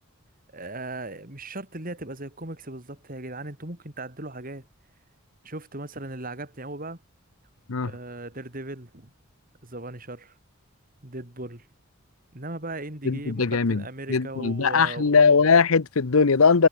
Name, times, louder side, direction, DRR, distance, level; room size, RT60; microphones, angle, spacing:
voice 1, 0.5-4.7 5.4-7.0 7.8-9.1 9.6-10.4 11.0-11.7 12.3-15.1, right 2 dB, 40° right, 3.7 m, -37 dB
voice 2, 13.0-13.8 14.1-16.7, left 5 dB, 80° left, 0.8 m, -20 dB
head